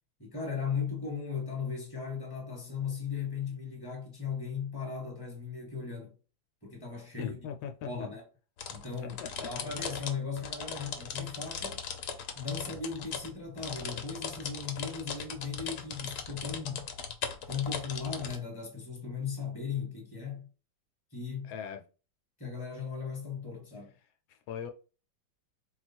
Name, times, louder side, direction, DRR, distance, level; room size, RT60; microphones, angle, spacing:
voice 1, 0.2-6.1 6.6-7.3 7.8-8.2 8.7-9.2 9.4-11.8 12.3-16.9 17.5-20.5 21.1-21.5 22.4-23.9, left 6 dB, 15° left, 1.3 m, -37 dB
voice 2, 7.2-7.9 9.2-9.5 21.5-21.8 24.3-24.7, left 8 dB, 80° left, 1.3 m, -39 dB
sound 1, 8.6-18.4, left 7 dB, 65° left, 1.1 m, -39 dB
4.2 x 2.3 x 4.3 m
omnidirectional pair, 2.1 m